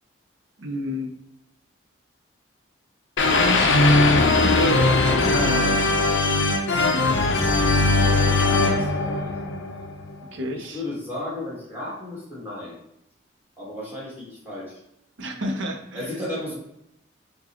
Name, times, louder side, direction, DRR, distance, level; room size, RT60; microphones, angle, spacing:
voice 1, 0.6-1.1 3.3-3.8 4.4-6.1 10.3-10.8 15.2-16.2, equal, 75° right, 3 dB, 0.7 m, -30 dB
sound 1, 3.2-10.1, left 2 dB, 70° left, 0.5 m, -20 dB
voice 2, 8.0-9.3 10.5-12.8 13.6-14.8 15.9-16.6, left 1 dB, 10° right, -6 dB, 1.4 m, -34 dB
4.8 x 2.3 x 2.9 m, 0.83 s
head